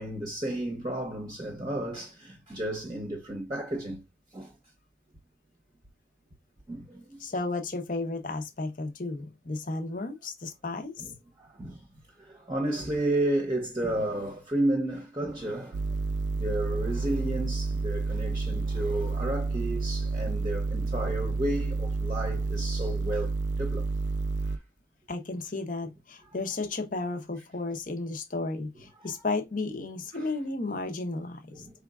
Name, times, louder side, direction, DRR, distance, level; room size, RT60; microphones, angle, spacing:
voice 1, 0.0-4.0 4.3-4.5 6.7-7.0 11.0-11.1 11.4-11.8 12.2-15.8 16.3-23.9 24.5-24.6 26.2-26.3 29.0-29.1 30.1-30.3 31.5-31.7, right 1 dB, 25° right, 0.8 m, -32 dB
voice 2, 7.2-11.0 25.1-31.6, left 3 dB, 45° left, 0.8 m, -33 dB
sound 1, 15.7-24.6, right 3 dB, 80° right, 0.4 m, -30 dB
5.0 x 3.5 x 2.4 m
head